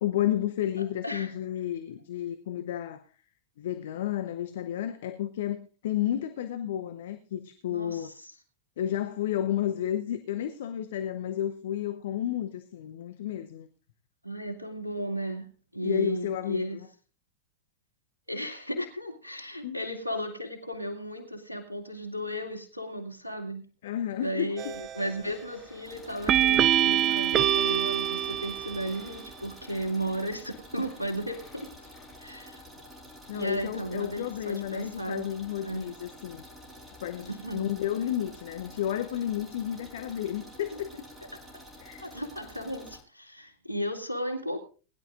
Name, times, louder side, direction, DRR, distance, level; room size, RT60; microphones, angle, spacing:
voice 1, 0.0-3.0 3.6-8.1 8.8-13.7 15.8-16.9 19.6-19.8 23.8-24.5 33.3-36.4 37.0-40.9 41.8-42.0, left 11 dB, 55° left, 9 dB, 0.9 m, -31 dB
voice 2, 7.7-8.1 14.2-16.8 18.3-23.6 24.2-31.7 32.2-32.6 33.3-35.3 35.6-35.9 37.3-37.7 42.0-44.6, equal, 85° right, 3 dB, 2.2 m, -34 dB
sound 1, 24.6-25.1 26.3-29.0, right 11 dB, 30° right, 0.5 m, -25 dB
sound 2, 25.0-32.2, left 5 dB, 30° left, 5.9 m, -57 dB
sound 3, 25.8-43.0, equal, 10° right, 4.8 m, -49 dB
21.0 x 11.0 x 2.6 m, 0.35 s
figure-of-eight pair, 90°, 0 cm